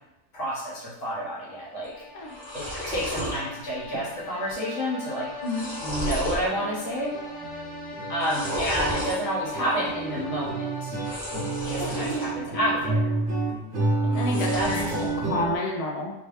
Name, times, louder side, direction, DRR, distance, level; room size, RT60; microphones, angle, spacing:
voice 1, 0.3-1.9 2.5-5.3 5.8-7.1 8.1-11.0 11.6-13.1 14.4-14.7, equal, 70° left, -7 dB, 1.6 m, -29 dB
sound 1, 1.5-12.5, left 2 dB, 90° left, 1.2 m, -41 dB
sound 2, 1.8-1.9 2.2-3.4 3.8-4.2 4.5-4.6 5.2-6.5 6.9-7.4 8.1-9.2 10.9-12.3 12.7-13.3 14.1-15.1, equal, 5° left, 1.2 m, -33 dB
sound 3, 5.6-5.7 6.0-6.2 6.5-15.6, right 3 dB, 65° right, 1.0 m, -30 dB
voice 2, 11.8-12.2 14.0-14.9 15.2-16.1, left 2 dB, 45° left, -1 dB, 0.5 m, -30 dB
3.2 x 3.0 x 3.1 m, 0.91 s
omnidirectional pair, 1.3 m